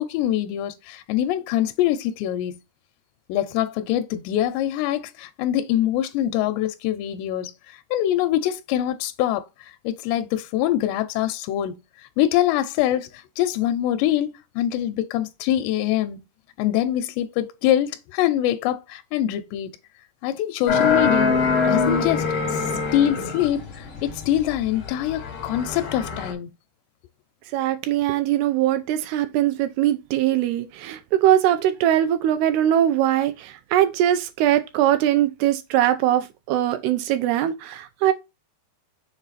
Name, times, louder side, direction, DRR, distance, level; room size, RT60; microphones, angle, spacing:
voice 1, 0.0-2.6 3.3-9.4 9.8-11.8 12.2-13.1 13.4-16.2 16.6-19.7 20.2-22.3 22.9-26.5, left 12 dB, 85° left, 2.7 m, -24 dB
sound 1, 20.7-26.3, left 4 dB, 65° left, 1.2 m, -24 dB
voice 2, 27.5-38.1, right 12 dB, 85° right, 2.4 m, -21 dB
6.9 x 3.9 x 4.0 m
omnidirectional pair, 5.0 m